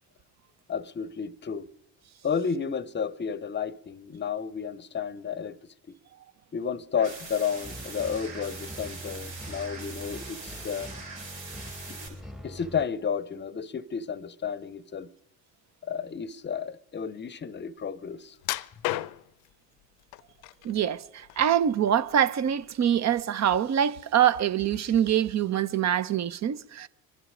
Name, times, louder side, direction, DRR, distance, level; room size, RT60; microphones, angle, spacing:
voice 1, 0.7-1.7 2.2-5.6 6.5-10.9 11.9-12.1 12.4-15.1 15.8-18.4, left 7 dB, 30° left, 0.7 m, -32 dB
sound 1, 6.9-12.1, right 3 dB, 85° right, 5.5 m, -42 dB
sound 2, 7.5-12.9, equal, ahead, 1.0 m, -43 dB
sound 3, 18.4-19.5 20.1-20.8 21.2-22.1 22.5-22.7 23.2-23.3, left 17 dB, 65° left, 0.6 m, -33 dB
voice 2, 20.6-26.9, right 9 dB, 45° right, 0.7 m, -24 dB
25.0 x 11.0 x 5.0 m
hypercardioid pair, 65°, 39 cm